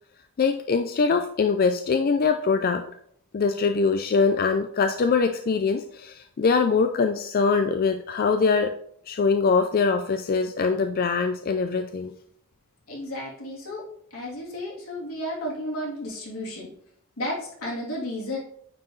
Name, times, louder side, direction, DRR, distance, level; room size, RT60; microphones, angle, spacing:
voice 1, 0.4-2.8 3.3-8.7 9.1-12.1, left 5 dB, 45° left, 7 dB, 0.4 m, -23 dB
voice 2, 12.9-13.8 14.1-16.7 17.2-18.4, left 1 dB, 85° left, -6 dB, 3.1 m, -33 dB
9.4 x 4.5 x 3.2 m, 0.66 s
head